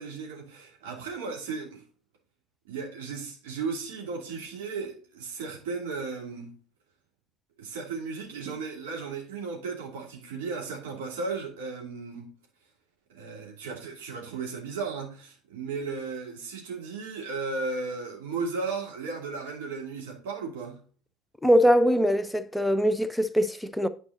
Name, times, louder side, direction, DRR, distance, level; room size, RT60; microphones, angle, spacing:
voice 1, 0.0-1.8 2.6-6.6 7.6-12.3 13.1-20.8, right 4 dB, 65° right, 2.6 m, -35 dB
voice 2, 21.4-23.9, equal, 5° left, 0.7 m, -22 dB
9.5 x 4.8 x 3.8 m
figure-of-eight pair, 65°, 0 cm